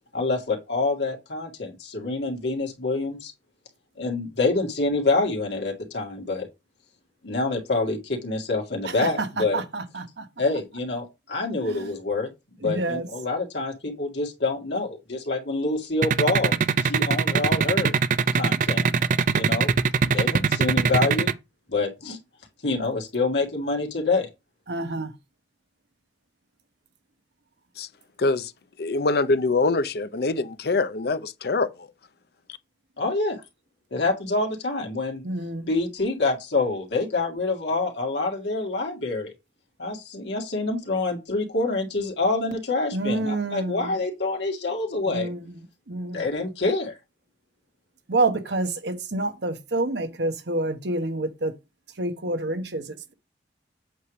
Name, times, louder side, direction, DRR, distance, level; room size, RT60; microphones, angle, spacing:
voice 1, 0.1-3.3 4.0-6.5 7.2-9.6 10.4-12.3 12.6-16.5 16.8-17.9 18.3-18.9 19.3-19.7 20.1-21.3 21.7-22.2 22.6-24.3 33.0-33.4 33.9-35.2 35.7-39.3 39.8-45.3 46.1-47.0, left 3 dB, 80° left, 2.1 m, -26 dB
voice 2, 8.8-10.3 11.6-11.9 12.6-13.1 24.7-25.1 35.2-35.8 42.9-43.9 45.1-45.6 45.9-46.2 48.1-51.5 52.0-53.1, right 2 dB, 75° right, 1.1 m, -28 dB
sound 1, 16.0-21.3, right 5 dB, 45° right, 0.4 m, -20 dB
voice 3, 28.2-28.5 28.8-31.9, left 3 dB, 60° left, 0.6 m, -24 dB
8.1 x 3.2 x 6.2 m
head